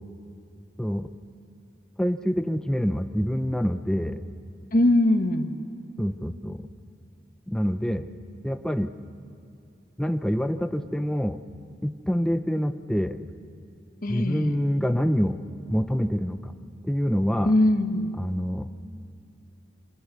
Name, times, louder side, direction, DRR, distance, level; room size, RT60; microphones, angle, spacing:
voice 1, 0.8-1.1 2.0-4.2 6.0-6.6 7.5-8.1 8.4-8.9 10.0-11.4 11.8-13.2 14.1-15.4 15.7-16.5 16.8-17.5 18.2-18.8, equal, 5° left, 8 dB, 0.7 m, -26 dB
voice 2, 4.7-5.5 14.0-14.6 17.4-18.2, left 1 dB, 50° left, 7 dB, 1.5 m, -21 dB
29.0 x 27.0 x 6.8 m, 2.4 s
head